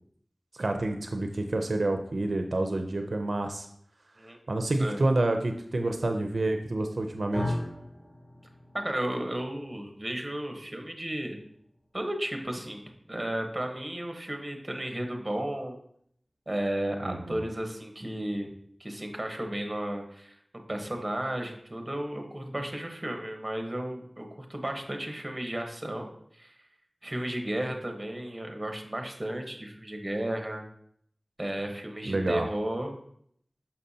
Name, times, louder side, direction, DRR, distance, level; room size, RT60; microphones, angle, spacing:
voice 1, 0.6-3.7 4.5-7.6 17.0-17.4 32.1-32.5, right 2 dB, 80° right, 5 dB, 0.5 m, -28 dB
sound 1, 7.3-15.6, left 1 dB, 30° left, 2.6 m, -41 dB
voice 2, 8.7-11.4 11.9-12.8 13.1-15.8 16.5-18.5 18.8-20.4 20.7-26.5 27.0-30.6 31.4-33.0, right 1 dB, 25° right, 4 dB, 1.1 m, -33 dB
6.6 x 5.6 x 2.8 m, 0.67 s
wide cardioid pair, 60°, 0 cm